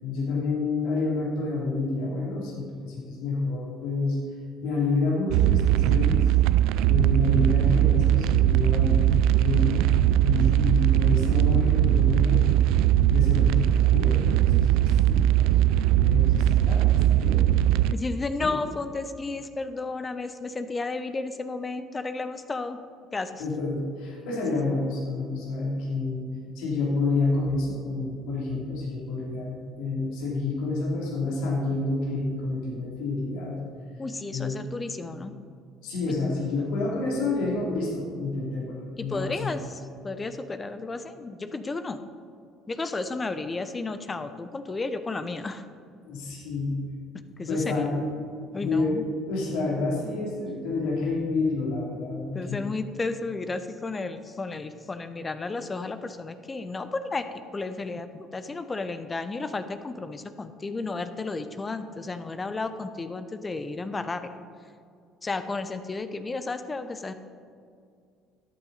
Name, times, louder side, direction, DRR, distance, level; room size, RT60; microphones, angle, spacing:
voice 1, 0.0-4.2 4.6-6.3 6.9-9.8 10.2-17.5 18.4-18.5 23.4-26.3 26.5-33.5 34.3-34.6 35.8-39.6 46.0-46.7 47.5-48.1 48.5-52.6, left 3 dB, 75° left, -3 dB, 2.9 m, -29 dB
sound 1, 5.3-17.9, right 13 dB, 75° right, 0.3 m, -20 dB
voice 2, 17.9-22.8 23.1-23.4 34.0-35.3 36.0-36.1 39.0-42.0 42.7-45.6 47.4-47.9 48.5-49.0 52.3-64.4 65.2-67.1, left 3 dB, 25° left, 10 dB, 0.8 m, -33 dB
13.5 x 9.0 x 4.1 m, 2.3 s
hypercardioid pair, 65°, 0 cm